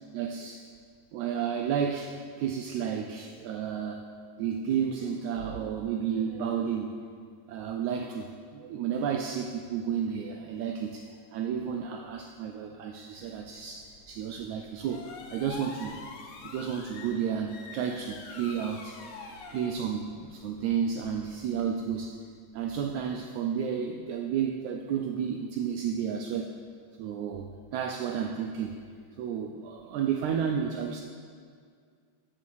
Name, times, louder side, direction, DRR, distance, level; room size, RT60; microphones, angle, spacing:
voice 1, 0.1-0.7 1.1-4.1 4.4-7.0 7.5-16.1 16.4-19.0 19.5-22.2 22.5-26.5 27.0-28.8 29.2-31.0, right 7 dB, 90° right, 3 dB, 1.6 m, -32 dB
sound 1, 13.1-21.7, left 4 dB, 70° left, 1.7 m, -47 dB
8.4 x 7.5 x 6.2 m, 2.1 s
omnidirectional pair, 3.9 m